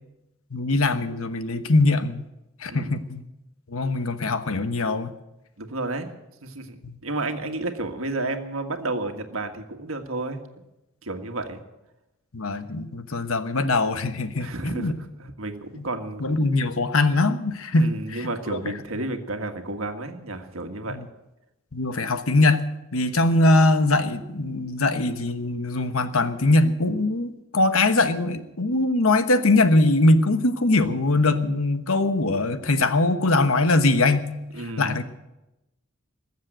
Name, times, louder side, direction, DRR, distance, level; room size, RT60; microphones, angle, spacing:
voice 1, 0.5-2.2 2.6-3.2 3.7-5.1 12.3-15.0 15.8-15.9 16.2-18.6 20.9-21.0 21.7-22.7 22.9-34.3 34.8-35.0, left 2 dB, 75° left, 10 dB, 1.1 m, -22 dB
voice 2, 2.7-3.0 5.6-6.1 6.4-10.6 11.0-11.6 14.4-16.6 17.7-21.0 34.5-35.0, right 2 dB, 75° right, 5 dB, 1.7 m, -32 dB
20.5 x 7.5 x 9.1 m, 0.94 s
head